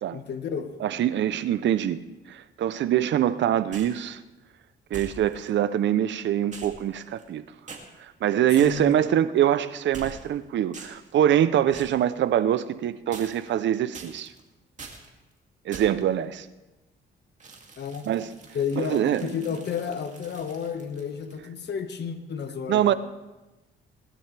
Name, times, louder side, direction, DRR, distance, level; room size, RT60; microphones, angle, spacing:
voice 1, 0.1-0.7 8.6-9.0 17.8-18.0 18.5-22.9, left 7 dB, 60° left, 6 dB, 1.6 m, -31 dB
voice 2, 0.8-2.0 2.3-4.2 4.9-7.4 8.2-14.3 15.7-16.5 18.0-18.3 18.8-19.4 22.7-22.9, right 10 dB, 65° right, 14 dB, 0.7 m, -24 dB
sound 1, 3.7-4.0 4.9-5.5 6.5-7.4 7.7-7.8 8.6-9.0 9.9-10.4 10.7-11.1 11.7-12.0 13.1-13.6 13.9-14.4 14.8-15.1 15.7-16.1 17.4-21.4, right 4 dB, 40° right, 2.5 m, -44 dB
20.0 x 12.0 x 3.4 m, 1.1 s
cardioid pair, 90°, 20 cm